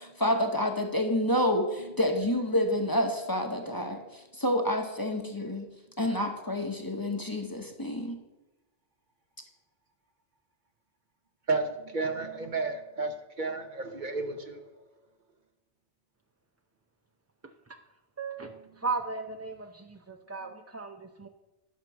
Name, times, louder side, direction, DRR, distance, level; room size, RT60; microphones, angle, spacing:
voice 1, 0.0-5.7 6.0-8.2, left 1 dB, 20° left, 1.0 m, -28 dB
voice 2, 11.5-14.6, right 3 dB, 45° right, 1.0 m, -32 dB
voice 3, 18.2-21.3, right 4 dB, 25° right, 0.3 m, -36 dB
11.0 x 6.1 x 6.1 m
omnidirectional pair, 1.2 m